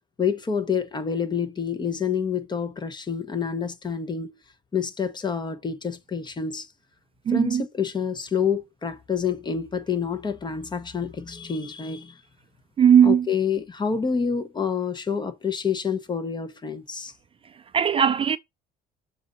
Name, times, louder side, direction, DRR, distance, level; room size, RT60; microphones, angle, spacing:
voice 1, 0.2-4.4 4.7-6.7 7.3-12.2 13.0-17.1, left 6 dB, 25° left, 1.1 m, -28 dB
voice 2, 7.3-7.6 12.8-13.3 17.7-18.4, right 8 dB, 35° right, 0.4 m, -18 dB
6.7 x 2.6 x 5.3 m
cardioid pair, 110°, 17 cm